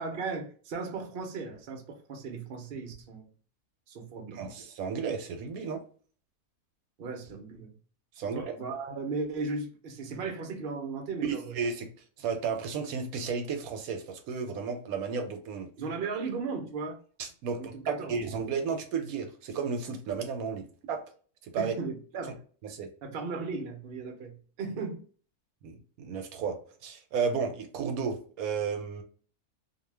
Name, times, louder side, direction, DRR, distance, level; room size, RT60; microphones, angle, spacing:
voice 1, 0.0-3.3 3.9-4.4 7.0-7.7 8.2-11.6 15.8-17.0 17.5-18.2 21.6-22.4 23.0-25.0, right 4 dB, 55° right, 0.6 m, -36 dB
voice 2, 4.3-5.8 8.2-8.4 11.2-11.9 12.2-15.7 17.2-21.0 21.4-21.7 22.7-22.9 25.6-29.0, right 5 dB, 75° right, 1.0 m, -33 dB
2.6 x 2.2 x 3.1 m
omnidirectional pair, 1.6 m